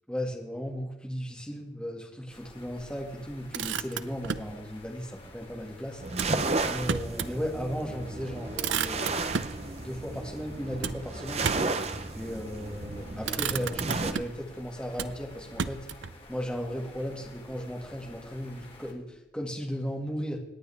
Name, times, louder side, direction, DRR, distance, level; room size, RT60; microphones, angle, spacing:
voice 1, 0.1-6.0 6.7-9.1 9.8-11.5 12.2-15.9 16.3-20.4, equal, 5° left, -1 dB, 2.2 m, -36 dB
sound 1, 2.3-18.9, left 2 dB, 30° left, 2.3 m, -51 dB
Motor vehicle (road), 3.3-4.6 6.1-7.4 7.8-7.9 8.2-9.6 10.8-11.8 12.6-12.9 13.2-14.5 14.9-16.2, right 6 dB, 80° right, 0.6 m, -33 dB
sound 2, 6.0-14.1, right 3 dB, 35° right, 0.8 m, -33 dB
27.0 x 10.0 x 3.6 m, 0.92 s
head